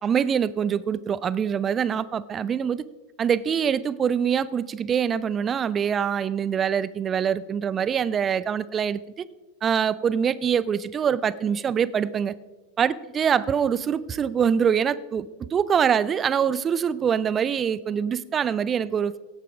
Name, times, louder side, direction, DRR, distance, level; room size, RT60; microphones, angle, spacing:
voice 1, 0.0-2.8 3.2-9.2 9.6-12.3 12.8-19.2, right 7 dB, 25° right, 19 dB, 0.5 m, -24 dB
17.0 x 9.0 x 5.0 m, 1.2 s
figure-of-eight pair, 90°, 0 cm